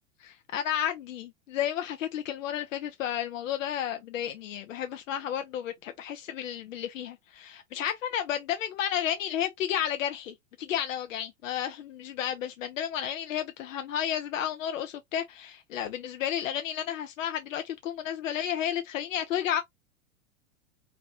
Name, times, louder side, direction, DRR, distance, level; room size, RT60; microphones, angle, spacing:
voice 1, 0.5-19.6, left 10 dB, 85° left, 0.6 m, -32 dB
3.0 x 2.7 x 2.8 m
hypercardioid pair, 105°, 38 cm